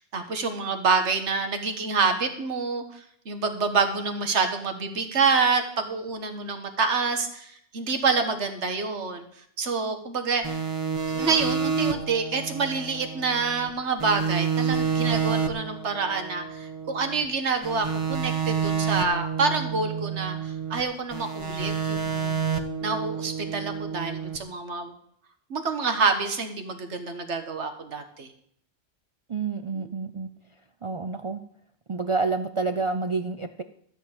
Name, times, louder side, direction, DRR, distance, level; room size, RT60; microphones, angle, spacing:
voice 1, 0.0-9.2 9.6-10.6 11.1-22.4 22.8-24.9 25.5-28.3 29.7-29.9, right 4 dB, 80° right, 7 dB, 1.6 m, -27 dB
sound 1, 10.4-13.7 14.0-17.2 17.6-20.8 21.1-24.4, right 6 dB, 30° right, 1.0 m, -29 dB
voice 2, 29.3-30.3 30.8-31.4 31.9-33.6, right 4 dB, 55° right, 8 dB, 0.3 m, -28 dB
13.0 x 4.6 x 8.6 m, 0.66 s
omnidirectional pair, 1.2 m